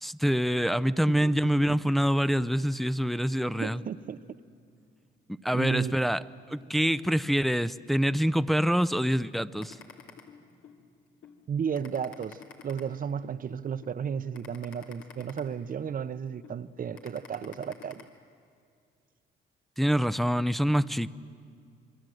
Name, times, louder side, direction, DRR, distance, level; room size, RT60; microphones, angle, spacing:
voice 1, 0.0-3.8 5.4-6.2 6.5-9.8 19.8-21.1, equal, ahead, 0.6 m, -26 dB
voice 2, 3.6-4.2 5.5-5.9 11.5-12.4 12.6-18.1, right 7 dB, 45° right, 0.8 m, -33 dB
sound 1, 9.6-10.8 11.2-11.4 11.7-13.4 13.8-14.0 14.3-16.0 16.4-16.6 17.0-18.0, left 7 dB, 80° left, 2.5 m, -48 dB
26.5 x 23.0 x 7.9 m
cardioid pair, 90°, 20 cm